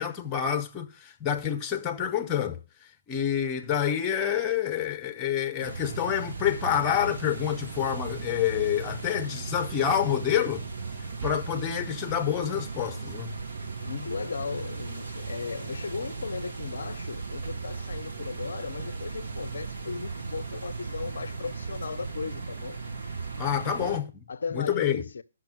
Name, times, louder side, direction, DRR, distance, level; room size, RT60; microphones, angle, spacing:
voice 1, 0.0-2.6 3.1-10.6 11.2-13.3 23.4-24.1 24.5-25.0, left 9 dB, 20° left, 0.8 m, -27 dB
sound 1, 5.6-24.0, right 4 dB, 55° right, 1.8 m, -37 dB
voice 2, 13.8-22.8 23.7-24.0 24.3-25.2, left 5 dB, 65° left, 0.5 m, -36 dB
10.5 x 6.3 x 6.3 m
figure-of-eight pair, 135°, 0 cm